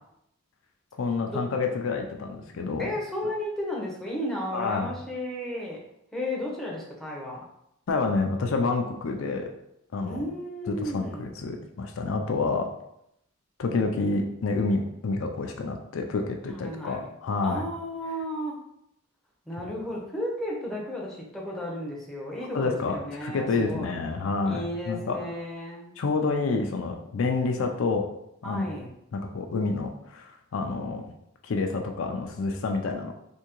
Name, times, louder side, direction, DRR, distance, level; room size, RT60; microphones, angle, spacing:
voice 1, 1.0-2.9 4.5-4.9 7.9-9.5 9.9-10.2 10.7-12.7 13.6-17.7 19.6-19.7 22.5-25.2 26.0-28.1 28.4-28.6 29.1-31.1 31.4-33.1, left 3 dB, 70° left, 4 dB, 0.4 m, -28 dB
voice 2, 2.8-5.8 6.1-7.4 10.0-11.2 16.5-17.0 17.4-18.6 19.5-24.0 24.4-25.9 28.4-28.9, left 1 dB, ahead, -4 dB, 0.6 m, -33 dB
3.5 x 2.7 x 2.9 m, 0.78 s
head